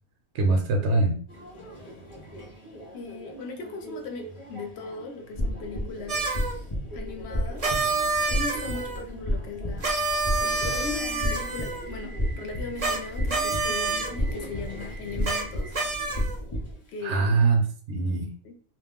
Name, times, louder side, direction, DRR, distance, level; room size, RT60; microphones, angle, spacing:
voice 1, 0.3-1.2 17.0-18.3, right 3 dB, 60° right, 2 dB, 0.8 m, -23 dB
Subway metro underground, 1.3-17.2, right 1 dB, 25° left, 0.8 m, -45 dB
voice 2, 2.9-6.3 6.9-7.7 8.3-9.9 10.4-15.8 16.9-17.3 18.4-18.6, left 3 dB, 60° left, 3 dB, 0.7 m, -38 dB
sound 1, 5.3-16.8, equal, 45° left, 0.3 m, -32 dB
sound 2, 6.1-6.5 7.6-9.0 9.8-11.8 12.8-13.0 13.3-14.1 15.2-15.4 15.7-16.4, right 3 dB, 40° right, 0.5 m, -28 dB
2.4 x 2.1 x 3.5 m, 0.43 s
omnidirectional pair, 1.4 m